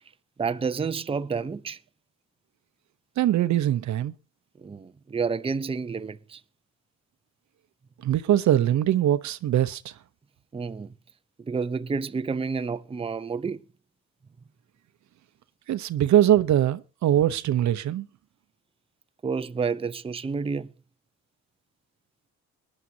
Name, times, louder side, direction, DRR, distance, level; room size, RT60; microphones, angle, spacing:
voice 1, 0.4-1.8 4.6-6.4 10.5-10.9 11.4-13.6 19.2-20.7, right 5 dB, 20° right, 0.6 m, -29 dB
voice 2, 3.2-4.1 8.0-9.9 15.7-18.1, right 12 dB, 70° right, 0.8 m, -22 dB
21.0 x 11.0 x 2.8 m
cardioid pair, 90°, 30 cm